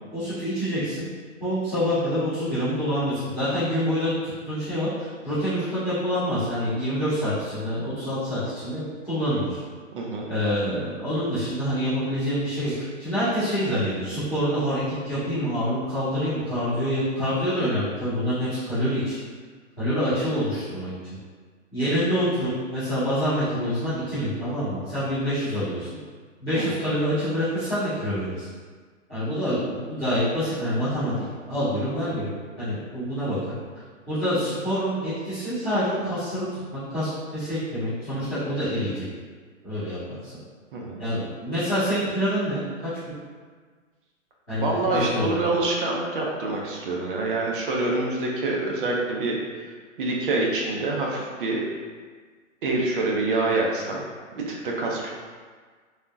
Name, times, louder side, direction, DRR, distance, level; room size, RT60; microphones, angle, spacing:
voice 1, 0.1-1.0 1.4-9.6 10.3-19.1 19.8-20.9 21.7-25.9 26.4-28.5 29.1-31.1 31.5-32.3 32.6-33.4 34.1-39.0 39.6-40.3 41.0-42.9 44.5-45.4, equal, 5° left, -26 dB, 0.3 m, -26 dB
voice 2, 9.9-10.3 26.5-26.8 40.7-41.0 44.6-49.7 50.0-51.6 52.6-54.0 54.3-55.1, right 2 dB, 40° right, -2 dB, 0.6 m, -26 dB
3.5 x 2.3 x 2.5 m, 1.6 s
hypercardioid pair, 145°, 40 cm